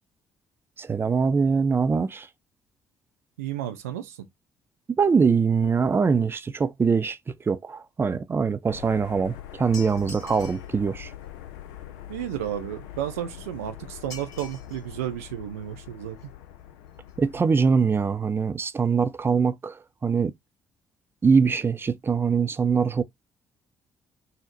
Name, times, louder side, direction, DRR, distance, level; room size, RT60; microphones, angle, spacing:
voice 1, 0.8-2.3 5.0-11.1 17.2-20.3 21.2-23.0, right 5 dB, 30° right, 0.6 m, -23 dB
voice 2, 3.4-4.3 12.1-16.3, right 11 dB, 80° right, 0.6 m, -32 dB
sound 1, 8.7-17.4, left 11 dB, 75° left, 0.4 m, -43 dB
sound 2, 9.7-10.7 14.1-14.9 15.2-15.3 16.2-16.3 16.6-16.7 16.9-17.1 17.4-17.5, left 3 dB, 45° left, 1.9 m, -44 dB
4.2 x 2.1 x 3.9 m
hypercardioid pair, 45°, 8 cm